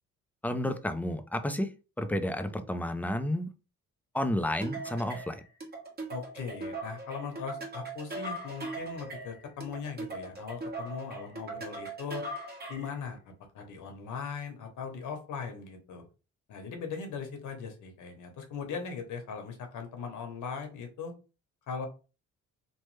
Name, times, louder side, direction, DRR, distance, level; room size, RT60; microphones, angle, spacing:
voice 1, 0.4-1.7 2.0-3.5 4.1-5.4, left 1 dB, 5° left, 0.4 m, -31 dB
sound 1, 4.6-13.0, right 2 dB, 30° right, 1.3 m, -40 dB
voice 2, 6.1-12.2 12.7-16.1 16.5-21.1 21.7-21.9, left 5 dB, 80° left, 1.0 m, -39 dB
3.1 x 2.1 x 3.2 m
cardioid pair, 90°, 30 cm